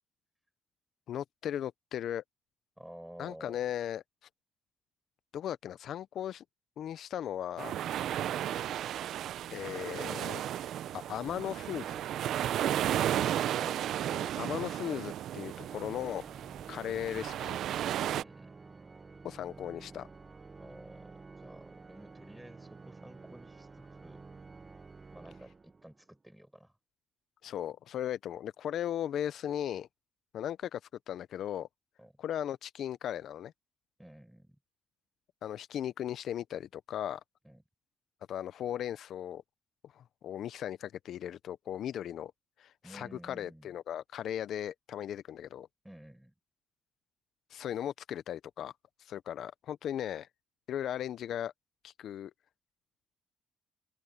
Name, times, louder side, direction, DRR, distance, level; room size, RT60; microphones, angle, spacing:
voice 1, 1.1-2.2 3.2-4.0 5.3-6.4 6.8-7.7 9.5-10.4 10.9-12.0 14.1-16.2 16.7-17.6 19.2-20.1 27.4-29.9 30.3-30.8 31.1-31.7 32.2-33.5 35.4-37.2 38.3-39.4 39.8-42.3 42.6-45.7 47.5-48.7 49.0-50.3 50.7-51.5 51.8-52.3, left 10 dB, 70° left, 0.5 m, -37 dB
voice 2, 2.8-3.6 18.0-18.6 20.6-24.2 25.1-26.7 32.0-32.1 34.0-34.6 37.4-37.6 42.8-43.7 45.8-46.3, equal, 5° right, 7.4 m, -51 dB
sound 1, 7.6-18.2, right 11 dB, 75° right, 0.6 m, -34 dB
Organ, 15.4-26.1, right 4 dB, 30° right, 0.9 m, -51 dB
open air
cardioid pair, 90°, 0 cm